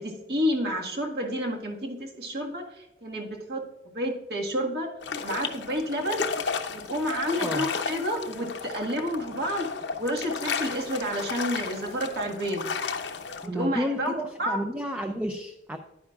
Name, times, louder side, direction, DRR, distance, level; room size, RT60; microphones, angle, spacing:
voice 1, 0.0-3.6 3.9-4.9 5.2-6.3 6.7-9.7 10.0-12.7 13.4-14.1 14.4-14.6, equal, 60° right, 0 dB, 1.7 m, -30 dB
sound 1, 5.0-13.5, left 5 dB, 80° left, 0.8 m, -33 dB
voice 2, 13.4-15.8, equal, 10° right, 5 dB, 0.5 m, -31 dB
11.0 x 9.7 x 2.4 m, 0.95 s
head